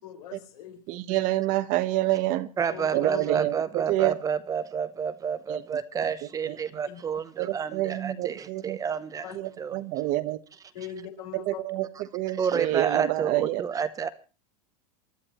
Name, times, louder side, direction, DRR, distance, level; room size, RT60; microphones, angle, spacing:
voice 1, 0.0-0.8 2.7-3.2 6.9-7.0 9.2-9.4 10.7-11.6, left 9 dB, 80° left, 3 dB, 4.9 m, -40 dB
voice 2, 0.9-2.5 2.9-4.1 5.5-5.6 6.5-6.6 7.4-8.8 9.3-10.4 11.3-13.6, right 16 dB, 45° right, 13 dB, 1.0 m, -28 dB
voice 3, 2.6-9.8 12.3-14.1, right 7 dB, 20° right, 12 dB, 0.7 m, -30 dB
28.0 x 12.0 x 3.0 m, 0.34 s
supercardioid pair, 155°, 19 cm